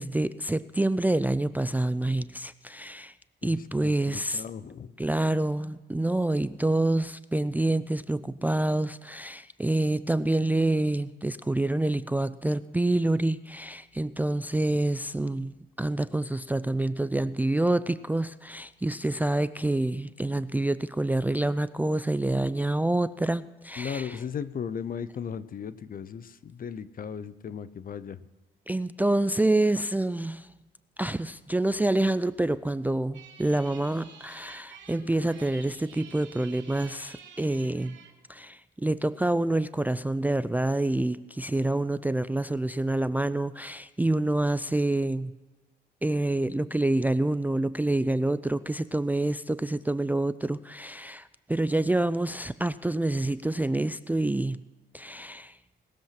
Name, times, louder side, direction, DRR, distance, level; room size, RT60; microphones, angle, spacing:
voice 1, 0.0-3.1 3.4-4.4 5.0-24.2 28.7-30.5 31.0-38.0 38.3-45.3 46.0-54.6 54.9-55.6, right 2 dB, 10° right, 15 dB, 0.4 m, -27 dB
voice 2, 3.4-4.9 23.8-28.2, left 7 dB, 45° left, 16 dB, 0.7 m, -36 dB
sound 1, 33.1-38.1, right 6 dB, 65° right, 2.7 m, -50 dB
19.5 x 7.3 x 5.8 m, 1.2 s
cardioid pair, 90°, 20 cm